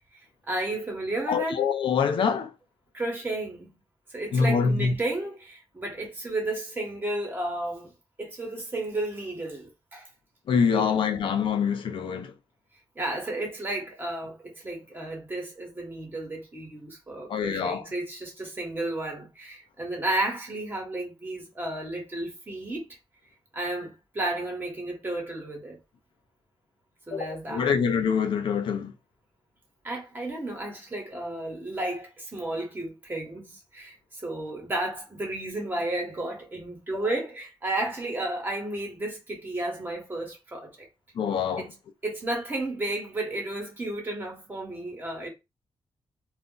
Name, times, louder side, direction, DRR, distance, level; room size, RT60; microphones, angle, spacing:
voice 1, 0.5-1.6 2.9-3.7 4.1-7.9 8.2-10.1 10.7-10.9 12.9-22.9 23.5-25.8 27.1-27.7 29.8-40.9 41.6-41.7 42.0-45.3, right 2 dB, 20° right, 1.1 m, -33 dB
voice 2, 1.3-2.5 4.3-4.9 10.5-12.3 17.3-17.9 27.1-28.9 41.2-41.6, left 6 dB, 70° left, 0.5 m, -25 dB
2.4 x 2.2 x 3.7 m
wide cardioid pair, 140°, 9 cm